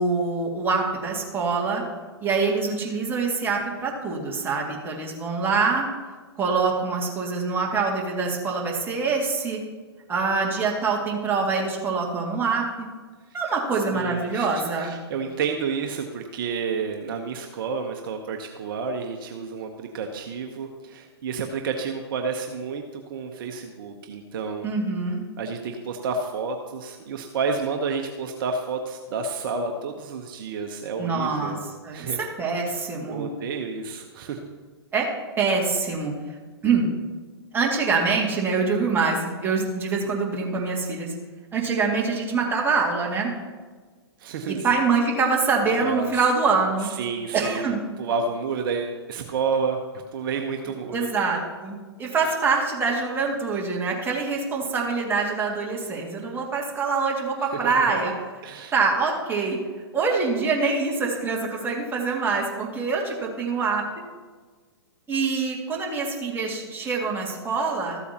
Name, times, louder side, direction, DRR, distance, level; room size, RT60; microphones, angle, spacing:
voice 1, 0.0-1.8 2.2-5.9 6.4-9.6 10.1-12.9 13.3-15.0 24.6-25.2 31.0-31.6 31.8-32.1 32.4-33.3 34.9-35.1 35.4-36.1 36.6-36.9 37.5-41.1 41.5-43.3 44.6-46.9 47.3-47.8 50.9-58.1 58.7-59.6 59.9-63.8 65.1-68.0, right 4 dB, 15° right, -2 dB, 2.2 m, -25 dB
voice 2, 13.9-24.7 25.4-31.6 31.9-32.3 33.1-34.4 44.2-44.7 45.6-46.2 46.8-49.8 50.1-51.1 57.4-58.1 58.4-58.7, right 5 dB, 55° right, 4 dB, 1.0 m, -30 dB
14.0 x 8.2 x 2.9 m, 1.4 s
hypercardioid pair, 115°, 14 cm